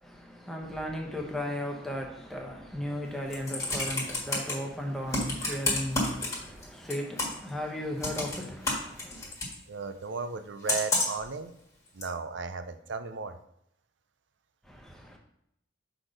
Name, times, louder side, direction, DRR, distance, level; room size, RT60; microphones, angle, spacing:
voice 1, 0.0-9.3 14.6-15.2, equal, ahead, 1.0 m, -36 dB
Computer keyboard, 3.1-4.5 5.1-6.6 6.9-7.5 8.0-9.5 10.7-11.3 12.0-12.1, left 2 dB, 15° left, 1.6 m, -29 dB
voice 2, 9.7-11.5 11.9-13.4, right 4 dB, 70° right, 0.5 m, -35 dB
6.2 x 4.0 x 5.1 m
head